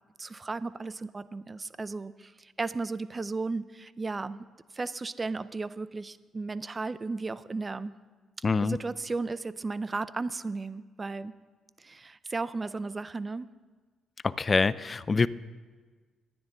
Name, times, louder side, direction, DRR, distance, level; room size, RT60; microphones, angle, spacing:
voice 1, 0.2-4.4 4.7-7.9 8.6-11.3 11.8-13.5, right 3 dB, 25° right, 16 dB, 0.5 m, -35 dB
voice 2, 8.4-8.8 14.2-15.3, left 4 dB, 30° left, 17 dB, 0.4 m, -25 dB
23.5 x 9.7 x 3.8 m, 1.4 s
cardioid pair, 90°, 0 cm